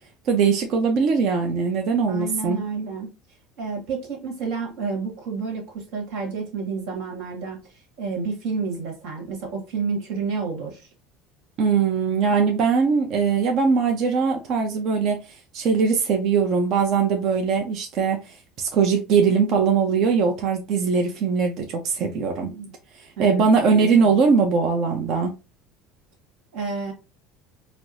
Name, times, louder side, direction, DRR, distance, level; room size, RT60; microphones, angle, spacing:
voice 1, 0.3-2.6 11.6-15.2 15.5-18.2 18.6-22.5 23.2-25.3, right 5 dB, 55° right, 0.6 m, -21 dB
voice 2, 2.1-3.1 3.6-7.6 8.0-10.9 22.5-22.7 23.2-24.3 26.5-26.9, right 4 dB, 75° right, 1.4 m, -30 dB
4.4 x 2.1 x 2.6 m
supercardioid pair, 95°, 0 cm